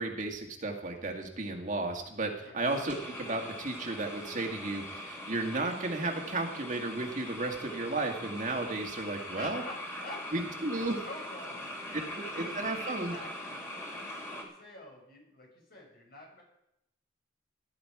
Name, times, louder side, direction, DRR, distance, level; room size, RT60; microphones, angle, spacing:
voice 1, 0.0-9.6 10.3-11.0 11.9-13.1, right 2 dB, 45° right, 2 dB, 1.9 m, -34 dB
sound 1, 2.6-14.4, left 1 dB, 15° left, 3.0 m, -42 dB
voice 2, 9.3-9.8 10.0-10.3 10.5-12.0 12.3-16.4, left 1 dB, 60° left, 0 dB, 5.5 m, -47 dB
16.0 x 11.0 x 4.9 m, 0.81 s
head